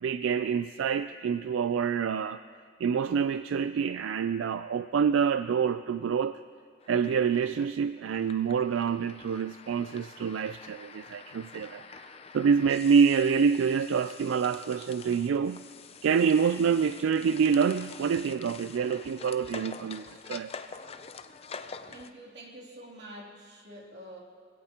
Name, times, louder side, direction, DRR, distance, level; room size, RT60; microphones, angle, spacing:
voice 1, 0.0-2.4 2.8-6.4 6.9-15.6 16.0-20.5, right 6 dB, 90° right, 12 dB, 0.3 m, -27 dB
sound 1, 6.8-22.1, left 5 dB, 30° left, 0.5 m, -46 dB
voice 2, 21.9-24.2, right 1 dB, 60° right, -3 dB, 3.0 m, -46 dB
23.0 x 17.0 x 2.9 m, 2.2 s
head